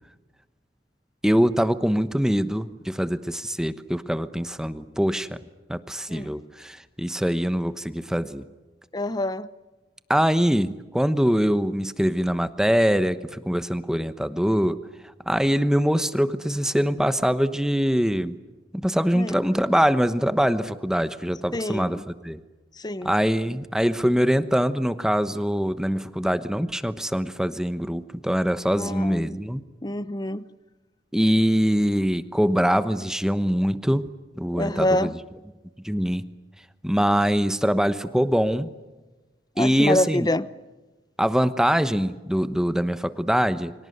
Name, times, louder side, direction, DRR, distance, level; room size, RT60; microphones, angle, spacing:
voice 1, 1.2-5.4 5.7-8.4 10.1-14.8 15.3-18.4 18.7-22.0 22.2-22.4 23.0-29.6 31.1-34.1 34.4-35.1 35.8-36.2 36.8-38.7 39.6-40.3 41.2-43.7, equal, 5° right, 11 dB, 1.0 m, -23 dB
voice 2, 8.9-9.5 19.1-19.4 21.5-22.0 22.8-23.1 28.7-29.4 29.8-30.5 34.5-35.1 39.6-40.5, left 1 dB, 20° left, 15 dB, 0.8 m, -26 dB
29.0 x 25.0 x 7.9 m, 1.2 s
head